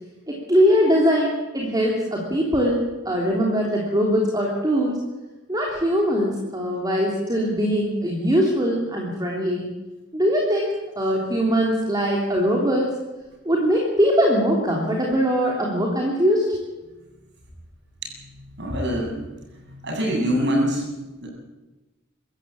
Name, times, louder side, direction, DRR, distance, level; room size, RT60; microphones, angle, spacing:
voice 1, 0.3-5.0 5.5-9.7 10.1-10.7 11.0-12.9 13.4-16.6, equal, 20° right, -1 dB, 3.2 m, -21 dB
voice 2, 18.6-19.2 19.7-20.9 21.2-21.3, equal, 60° right, 0 dB, 7.8 m, -24 dB
25.0 x 14.0 x 8.7 m, 1.1 s
head